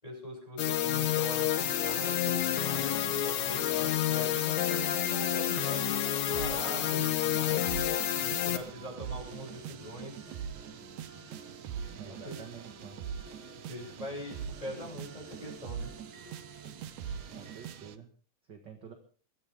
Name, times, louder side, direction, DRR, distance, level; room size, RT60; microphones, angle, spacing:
voice 1, 0.0-7.7 8.1-10.2 12.1-12.4 13.7-15.9, equal, 10° left, -1 dB, 7.0 m, -43 dB
sound 1, 0.6-8.6, left 11 dB, 70° left, 2.4 m, -29 dB
sound 2, 1.3-18.0, right 8 dB, 70° right, 2.2 m, -44 dB
sound 3, 2.0-17.8, right 1 dB, 20° right, 4.4 m, -52 dB
voice 2, 11.9-13.0 17.3-18.1 18.5-18.9, right 6 dB, 40° right, 3 dB, 2.2 m, -48 dB
22.5 x 14.0 x 3.7 m, 0.42 s
omnidirectional pair, 3.4 m